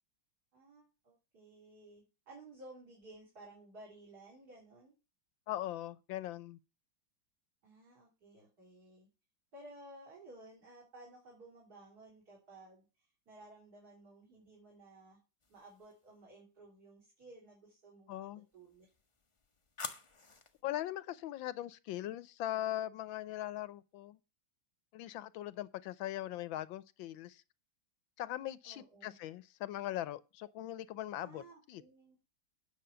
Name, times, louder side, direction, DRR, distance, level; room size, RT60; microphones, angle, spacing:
voice 1, 0.5-4.9 7.6-9.1 9.5-15.2 15.5-18.3 18.5-18.9 28.6-29.2 31.2-32.2, right 2 dB, 45° right, 4.1 m, -56 dB
voice 2, 5.5-6.6 18.1-18.5 20.6-24.2 24.9-27.4 28.2-31.4 31.7-31.8, left 13 dB, 75° left, 1.4 m, -40 dB
sound 1, 15.4-16.1 18.5-20.6, left 3 dB, 45° left, 0.4 m, -49 dB
9.5 x 6.4 x 6.8 m
omnidirectional pair, 2.3 m